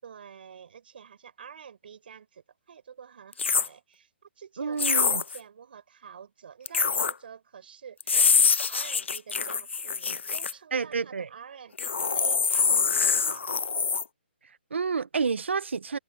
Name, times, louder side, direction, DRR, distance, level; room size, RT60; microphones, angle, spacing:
voice 1, 0.0-13.5, right 7 dB, 55° right, 6.6 m, -48 dB
sound 1, 3.3-3.7 4.8-5.4 6.7-7.1 8.0-10.5 11.8-14.0, left 5 dB, 85° left, 0.7 m, -24 dB
voice 2, 4.6-5.2 10.7-11.3 14.4-16.0, right 5 dB, 80° right, 1.2 m, -29 dB
hypercardioid pair, 160°, 6 cm